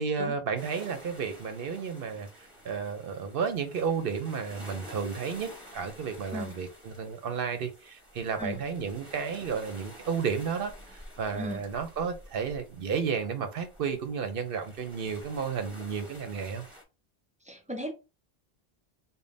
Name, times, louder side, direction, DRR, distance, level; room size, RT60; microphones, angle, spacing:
voice 1, 0.0-2.3 2.6-16.6, right 6 dB, 65° right, 0.8 m, -32 dB
sound 1, 0.6-16.8, equal, 30° right, 1.2 m, -50 dB
voice 2, 17.5-17.9, left 1 dB, 15° right, 0.3 m, -36 dB
3.6 x 2.1 x 3.9 m
omnidirectional pair, 1.0 m